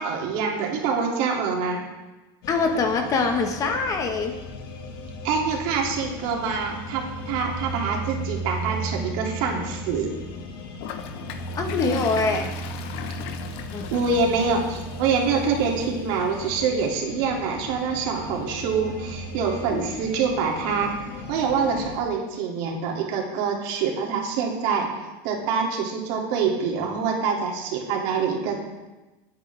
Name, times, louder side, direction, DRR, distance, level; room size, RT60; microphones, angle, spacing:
voice 1, 0.0-1.8 5.2-10.1 13.9-20.9 21.3-24.9 25.2-28.6, right 5 dB, 60° right, 0 dB, 2.8 m, -25 dB
sound 1, 2.4-22.0, equal, 70° left, 2.0 m, -36 dB
voice 2, 2.5-4.3 11.5-12.5 13.7-13.9 19.7-19.9 23.9-24.0, left 4 dB, 30° left, 5 dB, 1.4 m, -24 dB
Toilet flush, 10.8-15.9, left 8 dB, 55° left, 1.1 m, -38 dB
21.0 x 8.9 x 3.5 m, 1.1 s
supercardioid pair, 140°, 12 cm